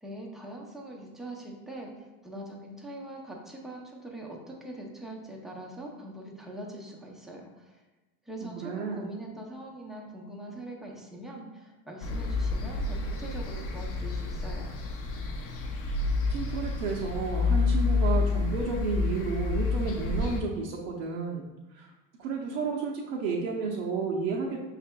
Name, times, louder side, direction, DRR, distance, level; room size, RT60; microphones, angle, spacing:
voice 1, 0.0-7.8 8.2-14.7, right 1 dB, ahead, -1 dB, 0.5 m, -42 dB
voice 2, 8.4-9.1 16.3-21.4 21.7-21.9 22.2-24.6, right 4 dB, 80° right, -2 dB, 0.7 m, -32 dB
sound 1, 12.0-20.4, left 3 dB, 35° left, 0.6 m, -29 dB
5.4 x 3.3 x 2.2 m, 1.1 s
supercardioid pair, 110°, 41 cm